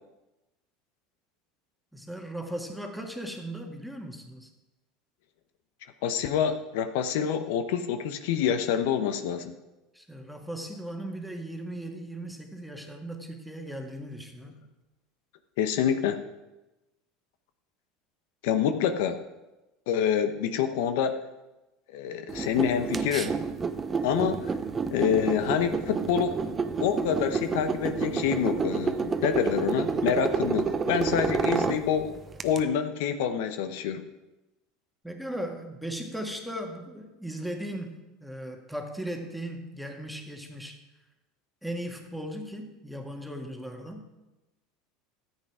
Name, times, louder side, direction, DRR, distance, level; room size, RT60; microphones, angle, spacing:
voice 1, 1.9-4.5 9.9-14.5 35.0-40.8 41.6-44.1, right 1 dB, ahead, 3 dB, 1.8 m, -37 dB
voice 2, 6.0-9.5 15.6-16.2 18.4-19.2 19.9-21.2 21.9-23.4 24.0-24.5 24.9-26.4 26.8-32.2 32.4-34.0, left 8 dB, 75° left, 9 dB, 0.9 m, -27 dB
sound 1, 22.3-32.6, right 5 dB, 25° right, 0.8 m, -29 dB
13.5 x 8.3 x 4.9 m, 1.0 s
supercardioid pair, 115°, 0 cm